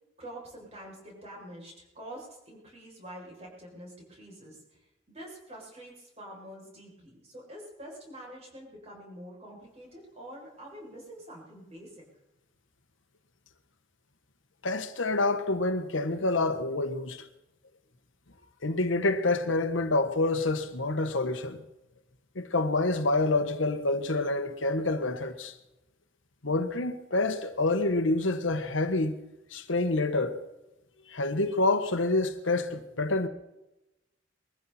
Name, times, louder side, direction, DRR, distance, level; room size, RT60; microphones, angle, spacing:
voice 1, 0.2-11.9, right 1 dB, 35° right, 7.3 m, -46 dB
voice 2, 14.6-17.2 18.6-21.6 22.3-25.5 26.4-29.2 29.5-30.4 31.1-33.3, left 2 dB, 85° left, 1.4 m, -27 dB
22.0 x 15.0 x 4.4 m
head